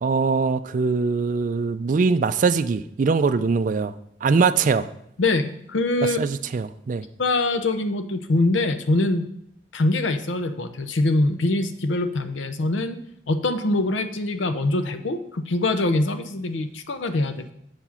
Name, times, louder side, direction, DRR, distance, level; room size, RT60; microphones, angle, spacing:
voice 1, 0.0-3.9 4.2-4.9 6.0-7.0, right 4 dB, 45° right, 13 dB, 0.3 m, -22 dB
voice 2, 5.2-6.2 7.2-9.3 9.7-13.0 13.3-17.5, left 2 dB, 80° left, 10 dB, 0.7 m, -23 dB
7.7 x 4.7 x 5.7 m, 0.73 s
head